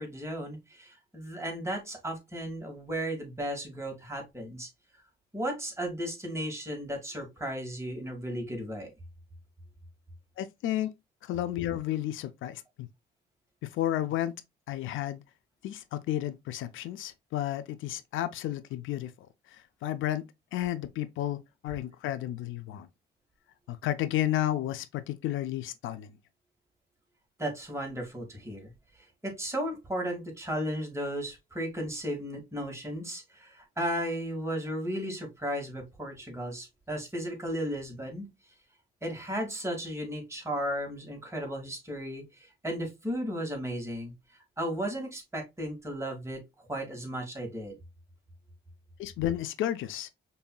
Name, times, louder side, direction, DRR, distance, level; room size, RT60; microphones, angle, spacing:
voice 1, 0.0-4.7 5.3-8.9 27.4-28.7 29.2-38.3 39.0-44.1 44.6-46.4 46.7-47.8, equal, 15° right, 1.9 m, -35 dB
voice 2, 10.4-10.9 11.2-12.9 13.6-14.4 14.7-15.2 15.6-22.9 23.7-26.1 49.0-50.1, left 12 dB, 80° left, 0.5 m, -32 dB
5.3 x 2.8 x 2.2 m
cardioid pair, 90°, 20 cm